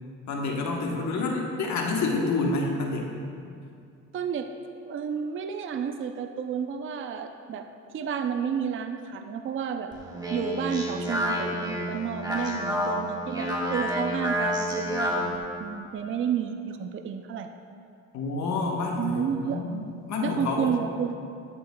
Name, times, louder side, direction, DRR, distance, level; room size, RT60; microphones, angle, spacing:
voice 1, 0.3-3.1 18.1-19.8 20.1-20.8, left 3 dB, 65° left, 0 dB, 1.1 m, -28 dB
voice 2, 4.1-4.5 4.9-7.7 7.9-9.9 10.3-17.5 19.0-19.6 20.2-21.2, right 7 dB, 45° right, 7 dB, 0.5 m, -31 dB
Speech, 9.9-15.4, equal, 15° right, 1.5 m, -29 dB
11.0 x 7.7 x 2.2 m, 2.4 s
cardioid pair, 90°, 30 cm